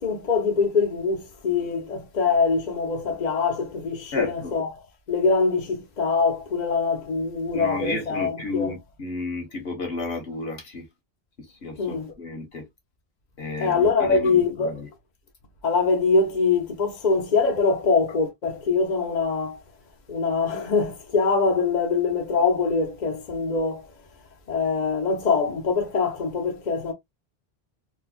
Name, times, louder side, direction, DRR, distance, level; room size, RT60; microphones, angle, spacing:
voice 1, 0.0-4.7 5.1-8.7 11.8-12.1 13.6-14.8 15.6-19.6 20.1-23.9 24.5-26.9, left 4 dB, 45° left, 0.8 m, -23 dB
voice 2, 4.1-4.6 7.5-10.8 11.6-12.7 13.4-14.9, left 3 dB, 70° left, 1.5 m, -32 dB
3.9 x 2.3 x 2.4 m
omnidirectional pair, 1.1 m